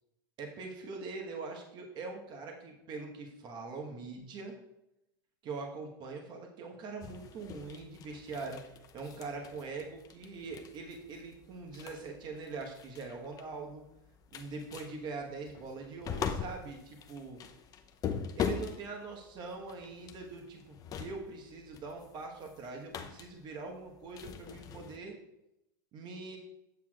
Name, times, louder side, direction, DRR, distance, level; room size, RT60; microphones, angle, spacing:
voice 1, 0.4-4.5 5.4-8.6 8.9-13.8 14.3-17.4 18.4-25.2 25.9-26.4, right 4 dB, 40° right, 1 dB, 1.3 m, -43 dB
sound 1, 7.0-25.0, left 7 dB, 30° left, 0.7 m, -42 dB
8.2 x 7.1 x 2.4 m, 0.87 s
hypercardioid pair, 115°, 12 cm